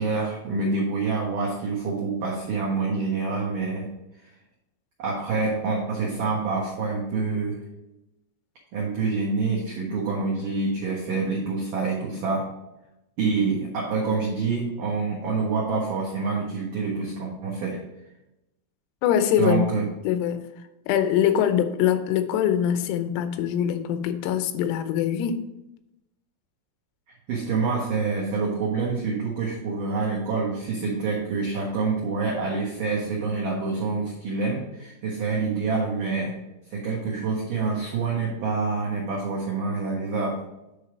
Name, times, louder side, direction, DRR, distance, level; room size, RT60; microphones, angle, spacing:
voice 1, 0.0-3.9 5.0-7.6 8.7-12.5 13.2-17.8 19.4-19.8 27.3-36.4 36.7-40.4, right 4 dB, 85° right, -4 dB, 1.8 m, -27 dB
voice 2, 19.0-19.7 20.1-20.5 20.9-25.4, left 9 dB, 90° left, 10 dB, 3.5 m, -23 dB
9.8 x 3.3 x 6.1 m, 0.91 s
omnidirectional pair, 6.0 m